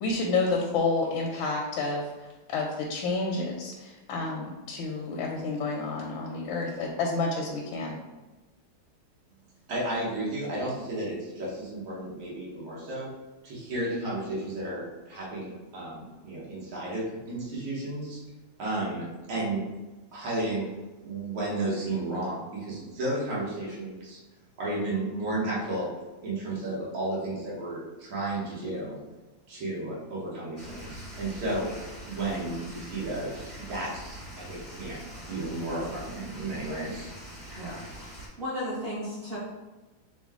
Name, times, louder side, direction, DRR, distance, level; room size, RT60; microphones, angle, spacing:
voice 1, 0.0-2.0 2.5-8.0, left 3 dB, 85° left, -1 dB, 1.4 m, -29 dB
voice 2, 9.7-13.1 13.4-18.2 18.6-19.7 20.1-20.7 21.0-24.2 24.6-25.9 26.2-29.0 29.5-31.7 32.1-35.0 35.3-37.1, right 2 dB, 80° right, -7 dB, 2.0 m, -33 dB
sound 1, 30.6-38.3, equal, ahead, 0.6 m, -43 dB
voice 3, 37.6-38.1 38.4-39.4, equal, 55° right, -6 dB, 0.6 m, -35 dB
5.0 x 2.2 x 3.5 m, 1.2 s
omnidirectional pair, 2.2 m